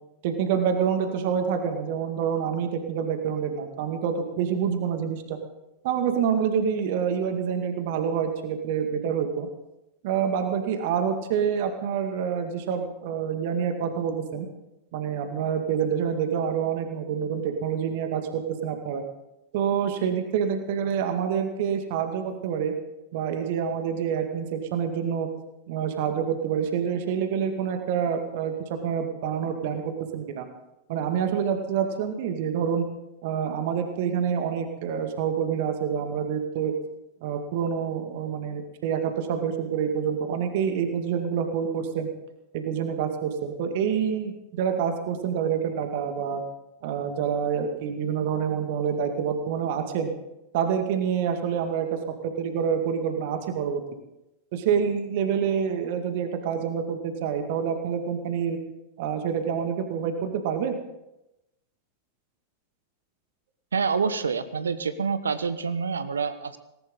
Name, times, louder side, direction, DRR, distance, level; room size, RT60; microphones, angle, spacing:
voice 1, 0.2-5.4 5.8-9.5 10.0-14.5 14.9-19.0 19.5-22.7 23.1-25.3 25.7-30.5 30.9-32.9 33.2-36.7 37.2-42.1 42.5-46.4 46.8-50.1 50.5-53.8 54.5-58.6 59.0-60.8, right 7 dB, 50° right, 6 dB, 2.1 m, -27 dB
voice 2, 63.7-66.6, right 5 dB, 70° right, 13 dB, 1.1 m, -27 dB
18.5 x 18.5 x 3.9 m, 0.91 s
figure-of-eight pair, 90°, 0 cm